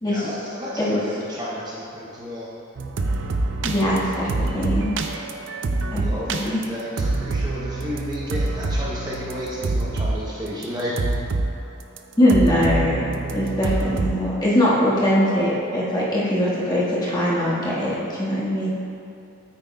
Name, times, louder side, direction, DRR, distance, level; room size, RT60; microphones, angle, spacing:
voice 1, 0.0-2.5 6.0-11.0, equal, 20° right, -6 dB, 0.7 m, -32 dB
sound 1, 2.8-10.2 10.5-11.5 11.8-12.0 12.3-14.1, right 2 dB, 60° right, 0.5 m, -26 dB
voice 2, 3.6-4.9 5.9-6.0 6.3-6.6 12.2-18.7, equal, 20° left, -7 dB, 1.5 m, -21 dB
9.1 x 8.8 x 2.3 m, 2.7 s
head